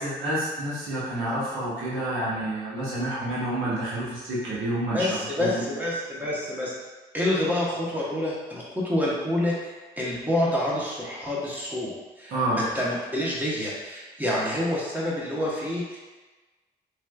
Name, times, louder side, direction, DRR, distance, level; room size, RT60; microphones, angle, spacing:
voice 1, 0.0-5.1 5.4-5.7 12.3-12.7, right 1 dB, 85° right, -8 dB, 1.0 m, -28 dB
voice 2, 4.9-6.7 7.1-16.0, left 1 dB, 10° right, -6 dB, 1.1 m, -28 dB
3.3 x 3.0 x 2.4 m, 1.2 s
supercardioid pair, 55°, 20 cm